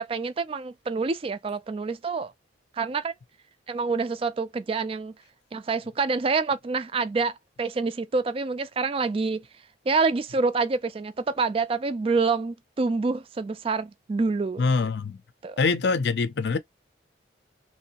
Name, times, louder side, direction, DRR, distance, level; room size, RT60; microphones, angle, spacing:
voice 1, 0.0-2.3 2.8-3.1 3.7-5.1 5.5-9.4 9.9-14.6 15.4-15.6, right 4 dB, 30° right, 0.3 m, -27 dB
voice 2, 14.6-15.2 15.6-16.6, left 4 dB, 60° left, 0.5 m, -24 dB
3.0 x 2.6 x 2.8 m
head